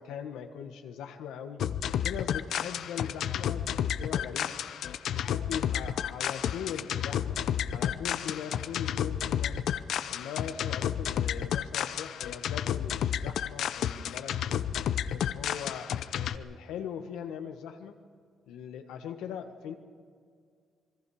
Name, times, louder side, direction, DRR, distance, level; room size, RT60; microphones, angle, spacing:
voice 1, 0.0-1.6 2.0-4.5 5.1-7.4 7.7-9.6 10.1-14.6 15.1-18.0 18.5-19.7, left 8 dB, 90° left, 6 dB, 1.5 m, -40 dB
sound 1, 1.6-16.4, left 9 dB, 75° left, 0.6 m, -31 dB
26.5 x 21.0 x 5.0 m, 2.1 s
cardioid pair, 90°, 0 cm